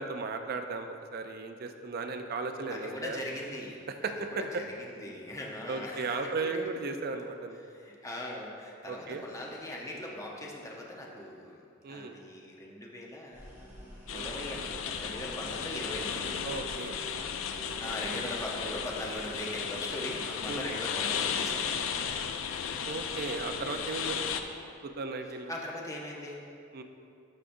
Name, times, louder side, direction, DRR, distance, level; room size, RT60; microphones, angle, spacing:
voice 1, 0.0-3.2 4.0-4.6 5.7-7.6 8.9-9.2 11.8-12.2 14.1-14.4 16.4-17.0 20.5-20.7 22.9-24.3 24.8-25.5 26.7-26.8, right 3 dB, 50° right, 6 dB, 0.4 m, -36 dB
voice 2, 2.7-4.1 4.5-6.6 7.6-11.6 11.9-16.3 17.8-21.7 25.5-26.4, left 1 dB, 15° left, -2 dB, 0.7 m, -40 dB
sound 1, 13.3-18.8, equal, 10° right, 1.5 m, -50 dB
sound 2, 14.1-24.4, left 7 dB, 75° left, 0.4 m, -35 dB
sound 3, 16.0-23.8, equal, 30° right, 1.1 m, -52 dB
12.5 x 4.9 x 2.6 m, 2.5 s
head